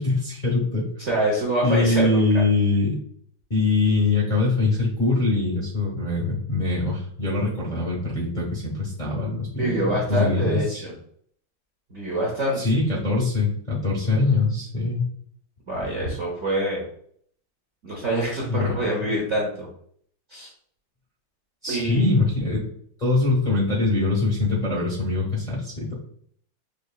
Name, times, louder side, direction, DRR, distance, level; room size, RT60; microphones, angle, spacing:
voice 1, 0.0-0.9 1.6-3.0 3.5-10.8 12.6-15.1 18.5-18.8 21.6-22.7 23.0-25.9, left 3 dB, 35° left, -4 dB, 0.7 m, -23 dB
voice 2, 1.0-2.4 9.6-10.9 11.9-12.6 15.7-16.8 17.8-19.7 20.3-20.5 21.7-22.1, right 1 dB, 55° right, -4 dB, 0.8 m, -25 dB
5.1 x 2.8 x 2.3 m, 0.62 s
omnidirectional pair, 2.2 m